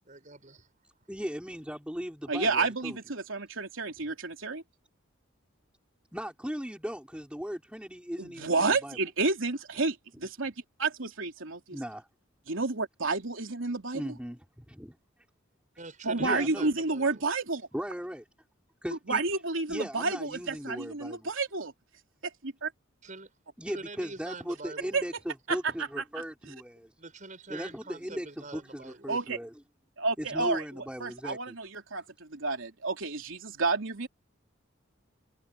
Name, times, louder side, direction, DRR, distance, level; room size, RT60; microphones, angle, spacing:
voice 1, 0.1-0.7 15.8-17.2 23.0-23.3 23.7-25.0 27.0-29.1, right 3 dB, 40° right, 7.3 m, -45 dB
voice 2, 1.1-3.0 6.1-9.0 11.7-12.1 13.9-15.0 16.2-16.7 17.7-18.2 18.8-19.4 19.7-21.3 23.6-26.9 27.5-29.5 30.2-31.5, equal, 5° right, 4.7 m, -38 dB
voice 3, 2.3-4.6 8.2-10.5 10.8-11.8 12.5-14.2 16.0-17.7 19.1-21.7 22.4-22.7 24.9-25.0 25.5-26.0 29.1-29.4 30.0-34.1, right 3 dB, 80° right, 3.1 m, -30 dB
head